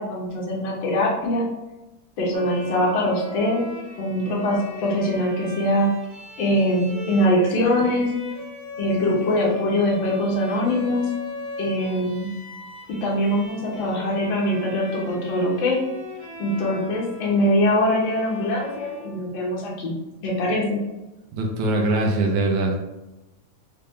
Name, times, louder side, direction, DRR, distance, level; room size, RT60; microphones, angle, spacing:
voice 1, 0.0-1.5 2.2-3.7 4.0-5.9 6.4-8.1 8.8-11.1 11.6-12.3 13.0-15.8 16.4-19.9 20.2-20.8, left 1 dB, 85° left, -4 dB, 1.1 m, -22 dB
Bowed string instrument, 2.3-19.7, left 2 dB, 60° right, 1.6 m, -39 dB
voice 2, 21.3-22.8, right 2 dB, 80° right, 1 dB, 1.9 m, -22 dB
5.5 x 2.1 x 3.5 m, 1.0 s
omnidirectional pair, 3.5 m